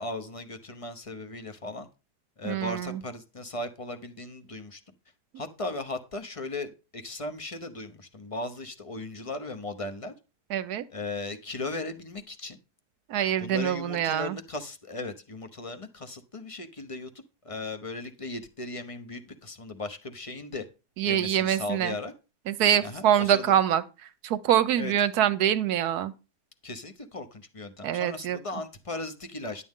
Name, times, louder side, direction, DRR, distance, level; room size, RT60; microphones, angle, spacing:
voice 1, 0.0-1.9 2.4-4.8 5.4-10.1 10.9-12.6 13.4-17.1 17.4-20.7 21.0-22.1 22.8-23.5 24.8-24.9 26.6-29.6, left 2 dB, 30° left, 0.6 m, -37 dB
voice 2, 2.4-3.0 10.5-10.9 13.1-14.4 21.0-21.9 22.5-26.1 27.8-28.4, right 10 dB, 75° right, 1.2 m, -25 dB
10.5 x 8.5 x 3.7 m
omnidirectional pair, 1.7 m